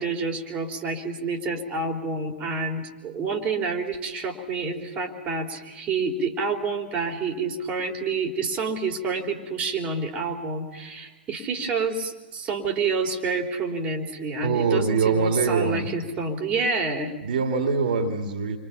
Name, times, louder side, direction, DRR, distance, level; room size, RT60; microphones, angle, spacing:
voice 1, 0.0-17.1, right 4 dB, 20° right, 0 dB, 3.7 m, -28 dB
voice 2, 14.4-15.9 17.2-18.6, right 5 dB, 55° right, 5 dB, 3.0 m, -23 dB
29.5 x 24.5 x 5.8 m, 1.1 s
figure-of-eight pair, 115°, 6 cm